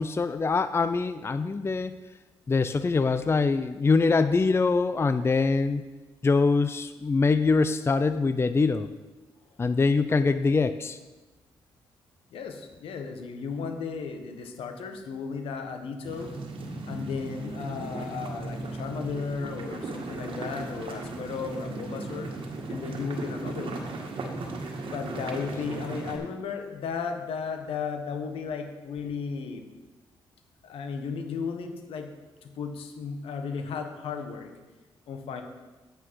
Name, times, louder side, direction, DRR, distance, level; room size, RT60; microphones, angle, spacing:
voice 1, 0.0-1.9 2.5-5.8 6.2-8.9 9.6-11.0, left 4 dB, 25° left, 12 dB, 0.4 m, -24 dB
voice 2, 12.3-16.3 16.9-22.3 22.7-23.9 24.9-29.6 30.6-32.1 32.4-34.5 35.1-35.4, left 5 dB, 80° left, 6 dB, 1.2 m, -35 dB
sound 1, 16.0-26.2, right 2 dB, 65° right, 1.7 m, -36 dB
9.0 x 8.4 x 4.7 m, 1.2 s
supercardioid pair, 60°, 10 cm